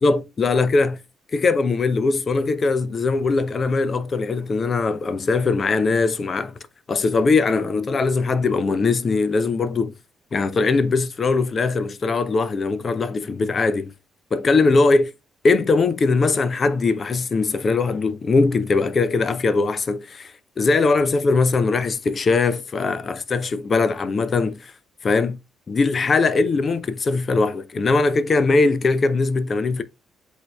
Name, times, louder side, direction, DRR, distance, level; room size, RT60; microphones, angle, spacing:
voice 1, 0.0-1.0 1.3-6.5 6.9-9.9 10.3-13.9 14.3-15.1 15.4-24.7 25.0-25.4 25.7-29.8, left 3 dB, 45° left, 0.5 m, -20 dB
7.9 x 2.7 x 2.2 m
hypercardioid pair, 45°, 0 cm